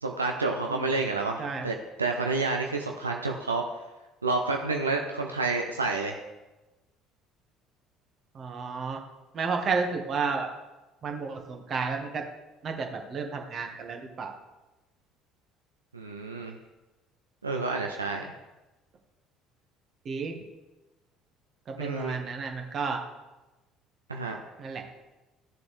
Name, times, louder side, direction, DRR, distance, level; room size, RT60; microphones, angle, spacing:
voice 1, 0.0-3.6 4.2-6.2 15.9-16.6 17.4-18.2 21.8-22.2 24.1-24.4, right 3 dB, 90° right, 2 dB, 0.6 m, -29 dB
voice 2, 8.3-9.0 9.3-10.5 11.0-12.2 12.6-14.3 20.0-20.4 21.7-23.0 24.6-24.8, right 5 dB, 45° right, 3 dB, 1.6 m, -31 dB
14.5 x 6.9 x 3.3 m, 1.1 s
figure-of-eight pair, 55°, 0 cm